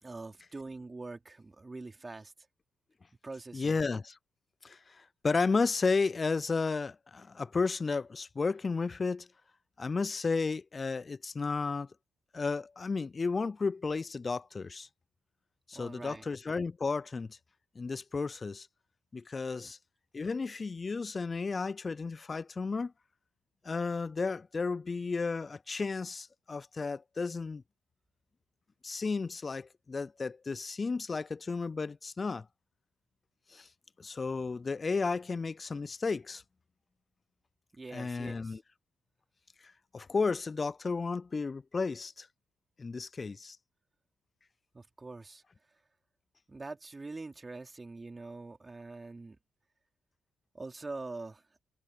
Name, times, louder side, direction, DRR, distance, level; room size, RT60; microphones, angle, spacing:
voice 1, 0.0-2.3 3.2-3.8 15.7-16.3 19.6-19.7 37.7-38.6 44.7-45.4 46.5-49.4 50.5-51.4, right 3 dB, 25° right, 3.4 m, -44 dB
voice 2, 3.5-4.1 4.6-4.8 5.2-9.3 9.8-11.9 12.3-14.9 15.7-17.4 17.8-18.7 19.1-19.8 20.1-22.9 23.6-27.6 28.8-32.5 33.5-33.7 34.0-36.4 37.9-38.6 39.9-42.3 42.8-43.6, left 4 dB, 30° left, 0.3 m, -33 dB
cardioid pair, 90°, 0 cm